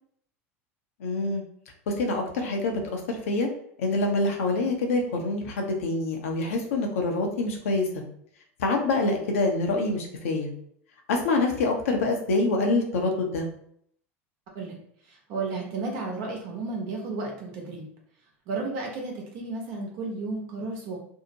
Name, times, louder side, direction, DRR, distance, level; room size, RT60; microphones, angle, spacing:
voice 1, 1.0-1.4 1.9-3.5 3.8-8.0 8.6-10.5 11.1-13.5, left 2 dB, 75° left, 2 dB, 0.6 m, -26 dB
voice 2, 15.1-17.9 18.5-21.0, right 3 dB, 60° right, 0 dB, 0.9 m, -33 dB
2.7 x 2.0 x 2.8 m, 0.66 s
hypercardioid pair, 85°, 7 cm